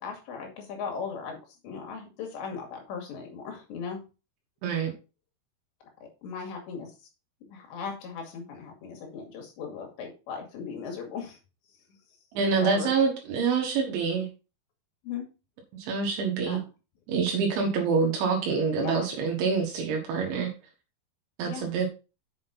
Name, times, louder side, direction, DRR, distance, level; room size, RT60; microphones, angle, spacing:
voice 1, 0.0-1.4 1.6-4.0 6.2-6.9 7.5-11.4 12.6-13.0 15.0-15.3 16.5-16.6 18.8-19.0 21.5-21.7, left 6 dB, 70° left, 2 dB, 4.2 m, -37 dB
voice 2, 4.6-4.9 12.4-14.3 15.8-16.6 17.1-20.5 21.4-21.9, right 5 dB, 75° right, 1 dB, 3.7 m, -26 dB
7.8 x 6.4 x 4.1 m, 0.31 s
omnidirectional pair, 5.6 m